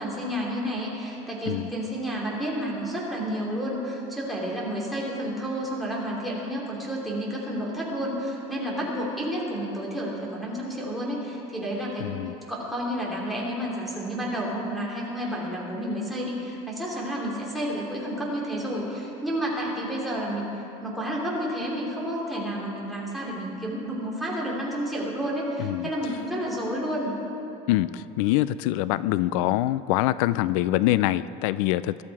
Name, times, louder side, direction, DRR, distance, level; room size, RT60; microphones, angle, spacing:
voice 1, 0.0-12.1 12.5-20.5 20.8-27.1, equal, ahead, -5 dB, 2.9 m, -30 dB
voice 2, 12.0-12.3 25.6-25.9 27.7-32.0, left 15 dB, 85° left, 16 dB, 0.4 m, -24 dB
22.0 x 12.5 x 4.8 m, 3.0 s
cardioid pair, 160°, 16 cm